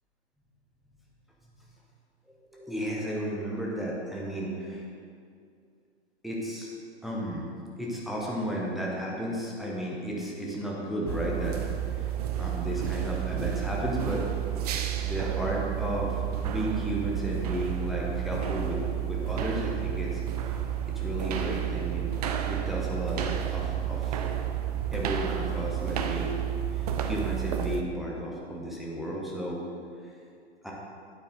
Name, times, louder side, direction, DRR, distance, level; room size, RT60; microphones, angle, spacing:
voice 1, 2.5-4.8 6.2-6.7 7.0-7.5 7.8-11.6 12.0-12.1 12.4-14.2 15.0-18.8 19.1-20.2 20.5-20.6 20.9-22.1 22.5-24.3 24.9-26.4 26.8-29.6 30.6-30.7, equal, ahead, -4 dB, 0.9 m, -33 dB
sound 1, 11.1-27.8, right 10 dB, 35° right, 0.6 m, -31 dB
9.0 x 8.2 x 3.8 m, 2.3 s
figure-of-eight pair, 120°, 34 cm